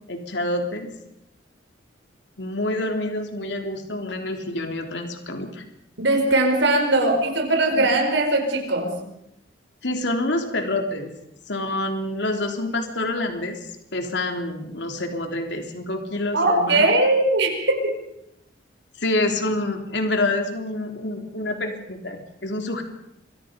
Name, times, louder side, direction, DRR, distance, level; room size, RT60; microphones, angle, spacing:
voice 1, 0.1-0.9 2.4-5.6 7.7-7.9 9.8-11.1 11.5-16.9 19.0-22.8, left 2 dB, 65° left, 4 dB, 3.4 m, -27 dB
voice 2, 6.0-9.0 16.3-18.0, right 2 dB, 70° right, 3 dB, 5.0 m, -20 dB
27.0 x 24.0 x 5.2 m, 0.80 s
head